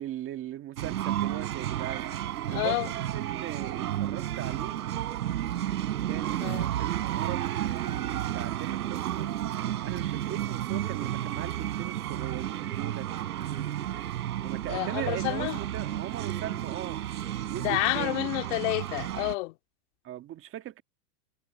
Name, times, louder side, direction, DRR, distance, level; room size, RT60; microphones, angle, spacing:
voice 1, 0.0-4.8 6.0-9.4 9.8-13.1 14.4-17.0 17.4-18.3 20.0-20.8, right 12 dB, 25° right, 1.8 m, -39 dB
sound 1, 0.8-19.4, right 12 dB, 75° right, 3.5 m, -32 dB
voice 2, 2.5-2.9 6.4-6.7 14.7-15.6 17.6-19.6, left 24 dB, 50° left, 2.4 m, -29 dB
hypercardioid pair, 125°, 46 cm